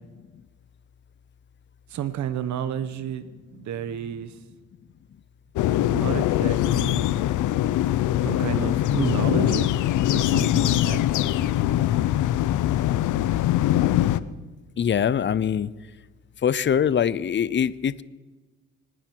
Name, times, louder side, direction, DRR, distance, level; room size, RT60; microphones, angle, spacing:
voice 1, 1.9-4.4 5.9-7.1 8.2-9.7 10.1-11.0, right 9 dB, 70° right, 12 dB, 1.0 m, -31 dB
sound 1, 5.6-14.2, left 13 dB, 80° left, 0.6 m, -22 dB
voice 2, 14.8-15.7 16.4-18.0, left 8 dB, 40° left, 19 dB, 0.6 m, -23 dB
25.0 x 10.0 x 4.6 m, 1.2 s
cardioid pair, 90°, 30 cm